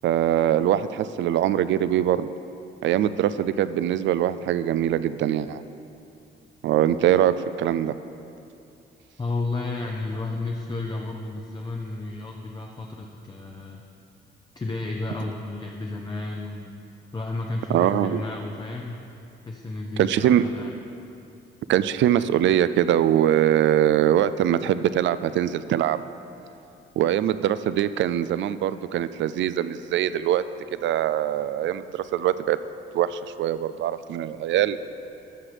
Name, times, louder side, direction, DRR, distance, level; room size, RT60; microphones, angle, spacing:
voice 1, 0.0-2.3 2.8-5.6 6.6-7.9 17.7-18.2 20.0-20.5 21.7-26.0 27.0-30.4 30.8-32.6 32.9-34.8, right 11 dB, 70° right, 14 dB, 0.4 m, -22 dB
voice 2, 9.2-13.8 14.5-16.8 17.1-19.0 19.4-20.7, left 2 dB, 20° left, 0 dB, 0.7 m, -32 dB
12.5 x 5.8 x 5.0 m, 2.7 s
cardioid pair, 90°, 20 cm